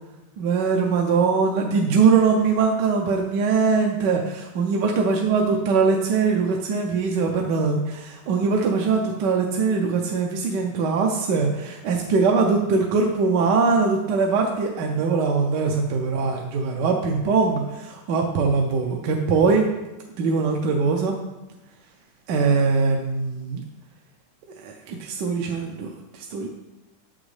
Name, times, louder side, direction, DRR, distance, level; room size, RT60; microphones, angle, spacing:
voice 1, 0.4-19.6 20.2-21.2 22.3-23.6 24.6-26.5, right 4 dB, 75° right, 1 dB, 1.2 m, -22 dB
7.1 x 6.2 x 3.2 m, 1.0 s
omnidirectional pair, 2.0 m